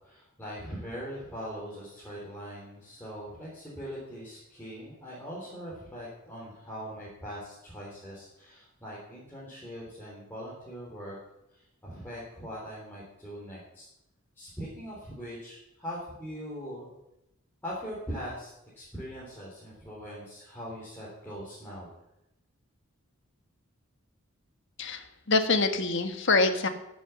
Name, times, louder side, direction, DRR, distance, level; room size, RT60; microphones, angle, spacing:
voice 1, 0.0-11.2 11.5-13.8 14.4-17.0 17.6-21.9, equal, 10° left, -8 dB, 3.6 m, -41 dB
voice 2, 24.8-26.7, left 3 dB, 55° left, 8 dB, 1.4 m, -25 dB
15.5 x 7.1 x 7.2 m, 0.87 s
head